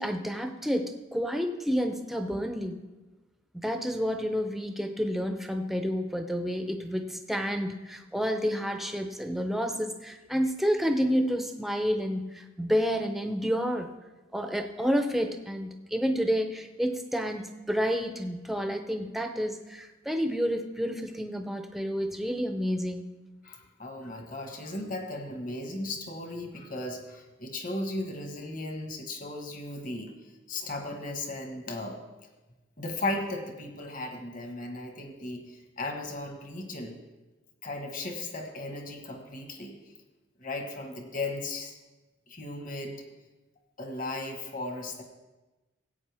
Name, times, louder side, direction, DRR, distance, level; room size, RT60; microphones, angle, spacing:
voice 1, 0.0-2.8 3.5-13.9 14.3-23.1, equal, ahead, 5 dB, 0.6 m, -29 dB
voice 2, 23.4-30.1 30.5-32.0 32.8-36.9 37.6-39.7 40.4-41.7 42.3-43.0 43.8-45.0, left 2 dB, 45° left, 4 dB, 1.4 m, -36 dB
16.5 x 8.6 x 3.5 m, 1.1 s
head